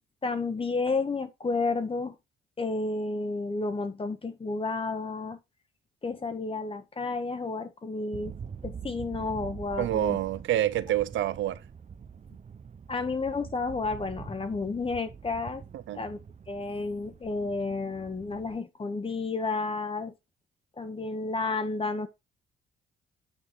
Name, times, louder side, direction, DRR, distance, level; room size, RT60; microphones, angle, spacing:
voice 1, 0.2-2.1 2.6-5.4 6.0-8.3 8.6-10.2 12.9-15.6 15.9-16.2 16.5-20.1 20.8-22.1, left 3 dB, 25° left, 1.6 m, -31 dB
sound 1, 8.1-18.6, right 6 dB, 35° right, 1.0 m, -45 dB
voice 2, 9.8-11.6 15.7-16.0, right 13 dB, 75° right, 0.6 m, -27 dB
9.0 x 4.9 x 3.9 m
cardioid pair, 90°, 20 cm